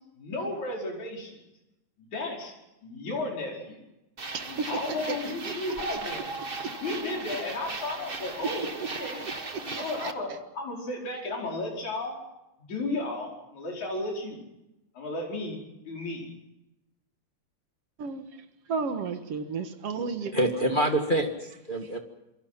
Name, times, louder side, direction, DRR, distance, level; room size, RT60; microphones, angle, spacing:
voice 1, 0.2-1.4 2.0-2.5 2.8-3.8 4.4-6.3 6.8-12.2 12.6-14.4 14.9-15.6 15.9-16.3, left 2 dB, 70° left, -1 dB, 6.5 m, -34 dB
sound 1, 4.2-10.1, right 3 dB, 25° right, 1.2 m, -37 dB
voice 2, 4.3-5.2 5.5-5.6 10.0-10.1 18.0-18.3 18.7-20.4, right 5 dB, 55° right, 8 dB, 2.5 m, -32 dB
voice 3, 20.3-22.0, right 1 dB, 20° left, 3 dB, 1.6 m, -26 dB
27.5 x 23.5 x 5.9 m, 0.92 s
omnidirectional pair, 3.4 m